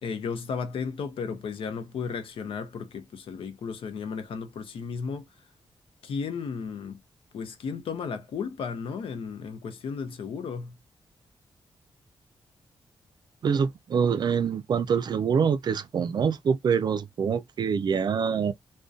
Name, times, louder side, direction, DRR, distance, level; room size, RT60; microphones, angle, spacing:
voice 1, 0.0-5.2 6.0-7.0 7.3-10.8, left 5 dB, 80° left, 0.6 m, -34 dB
voice 2, 13.4-18.5, right 6 dB, 50° right, 0.4 m, -25 dB
2.5 x 2.2 x 2.3 m
wide cardioid pair, 125°, 9 cm